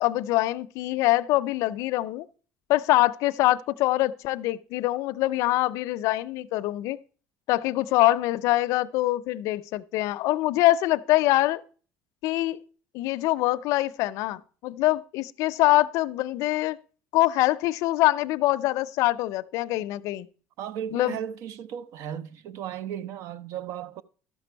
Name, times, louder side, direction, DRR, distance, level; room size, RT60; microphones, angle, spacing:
voice 1, 0.0-2.3 2.7-7.0 7.5-11.6 12.2-12.6 12.9-16.8 17.1-20.3 20.9-21.2, left 17 dB, 70° left, 0.4 m, -24 dB
voice 2, 20.6-24.0, right 9 dB, 60° right, 0.6 m, -35 dB
13.0 x 6.0 x 4.5 m
cardioid pair, 150°, 6 cm